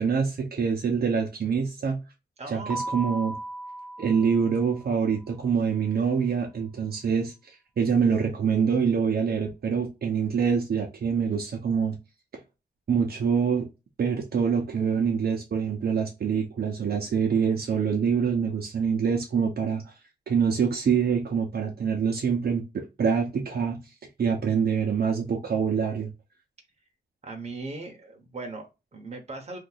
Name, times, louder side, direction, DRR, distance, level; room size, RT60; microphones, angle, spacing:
voice 1, 0.0-2.0 2.5-3.4 4.0-7.3 7.8-11.9 12.9-13.7 14.0-19.8 20.3-23.8 24.2-26.1, right 6 dB, 65° right, 0.7 m, -25 dB
voice 2, 2.4-2.8 27.2-29.6, right 3 dB, 40° right, 1.0 m, -38 dB
Keyboard (musical), 2.7-5.3, right 1 dB, 5° right, 0.3 m, -37 dB
2.8 x 2.6 x 3.9 m
wide cardioid pair, 170°, 18 cm